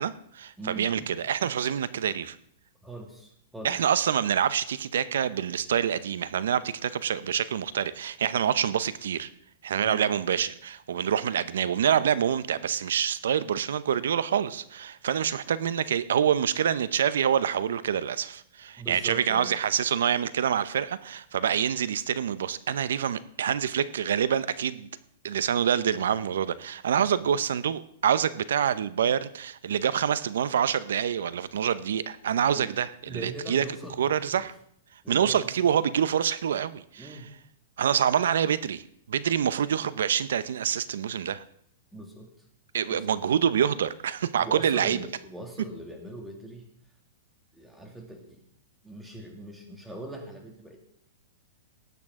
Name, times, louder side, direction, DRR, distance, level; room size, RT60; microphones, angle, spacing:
voice 1, 0.0-2.4 3.6-9.3 9.6-24.9 25.2-33.6 34.0-34.5 35.1-37.2 37.8-41.4 42.7-45.0, right 8 dB, 80° right, 16 dB, 0.7 m, -26 dB
voice 2, 0.6-1.1 2.8-3.8 9.8-10.1 18.8-19.6 26.9-27.3 32.5-32.7 33.1-34.4 35.0-35.5 37.0-37.3 41.9-42.3 42.9-43.2 44.3-46.7 47.5-48.4 48.8-50.8, right 1 dB, 5° right, 2 dB, 2.2 m, -41 dB
19.0 x 8.4 x 3.7 m, 0.67 s
hypercardioid pair, 145°, 0 cm